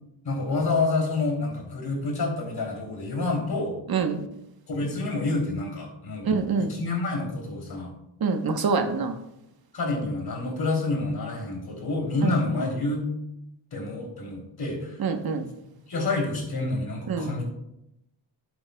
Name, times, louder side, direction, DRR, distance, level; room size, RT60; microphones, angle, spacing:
voice 1, 0.2-3.8 4.7-6.3 6.6-7.9 9.7-13.0 13.7-15.0 15.9-17.4, left 3 dB, 55° left, 1 dB, 3.1 m, -28 dB
voice 2, 3.9-4.3 6.2-6.7 8.2-9.2 15.0-15.4 17.1-17.3, right 5 dB, 50° right, 6 dB, 1.0 m, -25 dB
11.5 x 8.0 x 2.2 m, 0.83 s
cardioid pair, 80°, 45 cm